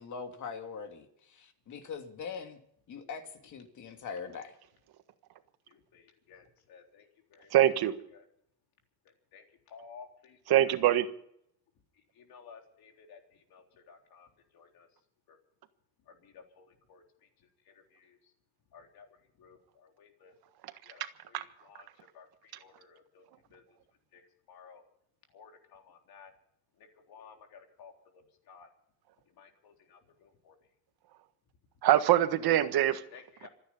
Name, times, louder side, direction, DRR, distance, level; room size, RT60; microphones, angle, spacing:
voice 1, 0.0-2.6 2.9-4.6, left 5 dB, 50° left, 2.7 m, -42 dB
voice 2, 5.7-7.5 8.1-8.2 9.3-10.6 12.2-13.2 13.5-14.3 14.5-14.9 15.3-15.4 16.1-17.0 17.9-18.2 18.7-19.1 19.4-20.3 20.9-21.0 21.3-21.9 22.1-23.2 23.5-23.6 24.1-24.2 24.5-24.8 25.3-26.3 27.1-27.9 28.5-28.7 29.4-30.6 33.1-33.5, left 6 dB, 65° left, 3.8 m, -55 dB
voice 3, 7.5-7.9 10.5-11.1 21.0-21.1 21.3-21.4 31.8-33.0, right 12 dB, 70° right, 1.6 m, -24 dB
26.5 x 9.7 x 5.5 m
cardioid pair, 150°, 38 cm